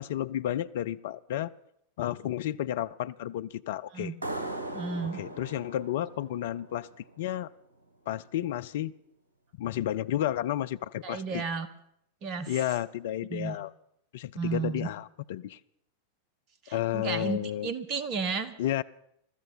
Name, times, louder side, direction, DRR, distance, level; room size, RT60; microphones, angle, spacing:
voice 1, 0.0-1.5 2.0-4.1 5.1-6.9 7.2-7.5 8.1-8.9 9.6-11.4 12.5-13.7 14.1-15.6 16.7-17.7 18.6-18.8, left 12 dB, 55° left, 13 dB, 0.5 m, -32 dB
sound 1, 4.2-7.5, right 2 dB, 75° right, 1.6 m, -39 dB
voice 2, 4.7-5.2 11.0-11.7 12.2-12.5 13.3-13.6 14.3-14.9 16.6-18.5, right 5 dB, 40° right, 13 dB, 1.5 m, -33 dB
23.0 x 13.5 x 4.3 m, 0.73 s
figure-of-eight pair, 90°, 0 cm